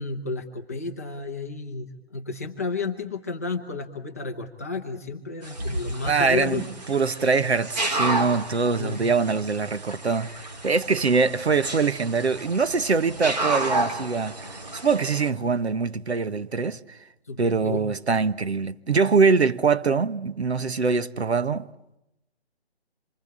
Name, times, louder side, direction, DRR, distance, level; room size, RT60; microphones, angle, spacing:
voice 1, 0.0-6.7 8.6-9.1 17.2-17.8, left 4 dB, 15° left, 1.1 m, -32 dB
sound 1, 5.4-15.3, right 2 dB, 40° right, 3.3 m, -31 dB
voice 2, 6.1-16.8 17.4-21.7, right 4 dB, 75° right, 1.4 m, -23 dB
26.5 x 24.5 x 8.8 m
hypercardioid pair, 175°, 33 cm